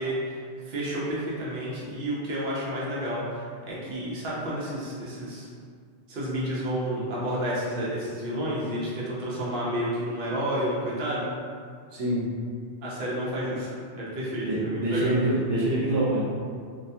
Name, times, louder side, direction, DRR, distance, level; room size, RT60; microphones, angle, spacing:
voice 1, 0.0-5.5 6.1-11.3 12.8-15.2, equal, 60° right, -7 dB, 0.7 m, -30 dB
voice 2, 11.9-12.3 14.5-16.2, right 1 dB, 80° right, -7 dB, 1.0 m, -25 dB
2.4 x 2.2 x 2.6 m, 2.1 s
omnidirectional pair, 1.2 m